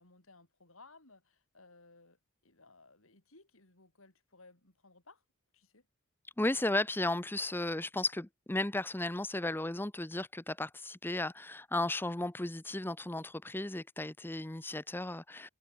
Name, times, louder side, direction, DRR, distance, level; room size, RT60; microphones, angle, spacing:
voice 1, 0.0-5.2 5.5-5.9, left 3 dB, 70° left, 4.4 m, -60 dB
voice 2, 6.4-15.5, left 2 dB, 10° left, 0.7 m, -34 dB
head